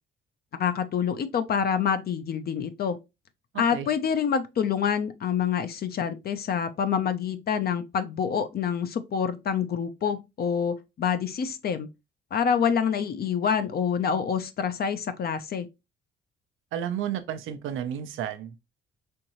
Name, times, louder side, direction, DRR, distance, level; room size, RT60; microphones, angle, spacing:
voice 1, 0.6-3.0 3.6-11.9 12.3-15.7, left 7 dB, 50° left, 0.6 m, -27 dB
voice 2, 3.5-3.9 16.7-18.7, right 9 dB, 85° right, 0.7 m, -32 dB
4.4 x 2.7 x 2.9 m
cardioid pair, 90°, 20 cm